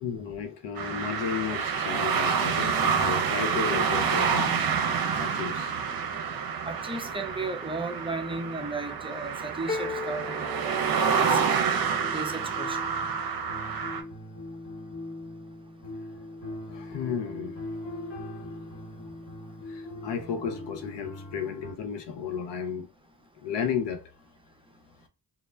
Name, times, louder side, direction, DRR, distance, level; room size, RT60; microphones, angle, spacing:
voice 1, 0.0-4.6 5.1-6.0 16.7-18.2 18.4-19.0 19.7-22.9 23.4-24.0, left 7 dB, 80° left, 0.6 m, -34 dB
sound 1, 0.8-14.0, right 6 dB, 55° right, 0.6 m, -28 dB
voice 2, 6.6-11.6 12.1-12.8, right 3 dB, 15° right, 0.5 m, -35 dB
sound 2, 9.7-11.7, left 4 dB, 20° left, 0.8 m, -36 dB
sound 3, 11.1-21.7, left 1 dB, 55° left, 1.1 m, -41 dB
2.1 x 2.0 x 3.3 m
supercardioid pair, 45°, 42 cm